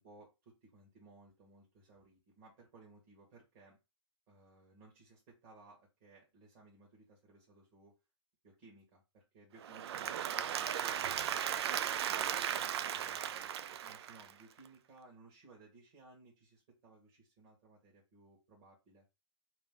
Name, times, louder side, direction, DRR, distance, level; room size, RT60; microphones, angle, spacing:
voice 1, 0.0-3.8 4.3-8.0 8.4-11.3 12.1-19.1, right 3 dB, 35° right, -3 dB, 1.7 m, -61 dB
Applause / Crowd, 9.6-14.6, right 9 dB, 55° right, 0.4 m, -36 dB
3.7 x 3.3 x 3.7 m, 0.26 s
hypercardioid pair, 150°, 16 cm